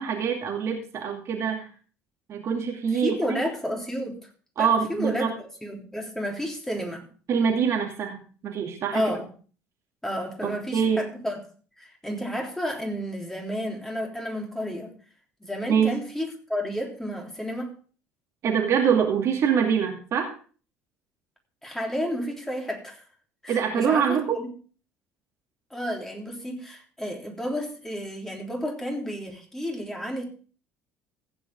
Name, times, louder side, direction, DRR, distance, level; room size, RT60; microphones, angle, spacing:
voice 1, 0.0-1.7 2.3-3.4 4.6-5.3 7.3-9.0 10.4-11.0 15.7-15.9 18.4-20.3 23.5-24.4, right 7 dB, 45° right, 2 dB, 2.5 m, -24 dB
voice 2, 2.9-4.2 4.6-7.1 8.9-9.3 10.0-11.4 11.8-14.9 15.4-17.7 21.6-23.0 23.4-24.4 25.7-30.2, equal, 5° left, 1 dB, 3.4 m, -31 dB
15.5 x 9.5 x 3.6 m, 0.39 s
figure-of-eight pair, 60°, 7 cm